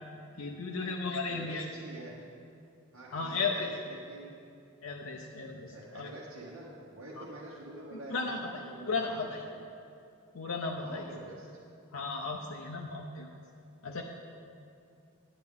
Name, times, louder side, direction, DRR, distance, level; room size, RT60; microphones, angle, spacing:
voice 1, 0.4-1.7 3.1-3.7 4.8-6.1 7.2-7.3 7.9-8.5 8.9-9.4 10.3-11.1 11.9-13.3 13.8-14.0, left 4 dB, 75° left, 1 dB, 0.6 m, -35 dB
voice 2, 1.3-2.2 2.9-4.3 5.7-9.7 10.8-11.5, right 1 dB, 80° right, -6 dB, 1.1 m, -47 dB
9.7 x 9.4 x 3.7 m, 2.5 s
head